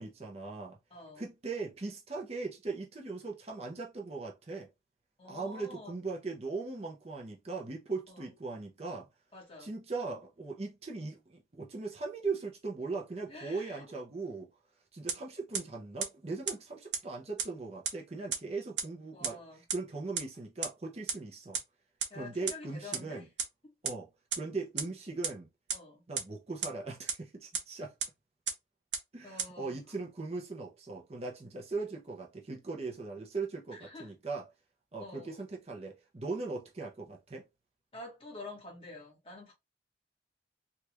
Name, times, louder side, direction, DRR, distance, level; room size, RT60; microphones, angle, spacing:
voice 1, 0.0-0.8 1.2-4.7 5.2-9.1 9.6-14.5 14.9-19.4 19.7-21.6 22.1-23.3 23.8-24.1 24.3-25.5 26.1-27.9 29.1-34.4 34.9-37.4, right 3 dB, 35° right, 0.7 m, -39 dB
voice 2, 0.9-1.3 5.2-5.9 8.1-8.3 9.3-9.8 13.3-13.9 19.1-19.6 22.1-23.3 25.7-26.1 29.2-29.8 33.7-34.1 35.0-35.4 37.9-39.5, left 2 dB, 30° left, 1.4 m, -48 dB
sound 1, 15.1-15.2 15.5-15.6 16.0-16.1 16.5-16.6 16.9-17.0 17.4-17.5 17.9-18.0 18.3-18.4 18.8-18.9 19.2-19.3 19.7-19.8 20.2-20.3 20.6-20.7 21.1-21.2 21.5-21.6 22.0-22.1 22.5-22.6 22.9-23.0 23.4-23.5 23.9-24.0 24.3-24.4 24.8-24.9 25.2-25.3 25.7-25.8 26.2-26.3 26.6-26.7 27.1-27.2 27.5-27.6 28.0-28.1 28.5-28.6 28.9-29.0 29.4-29.5, right 7 dB, 85° right, 0.8 m, -31 dB
3.4 x 2.4 x 2.9 m
head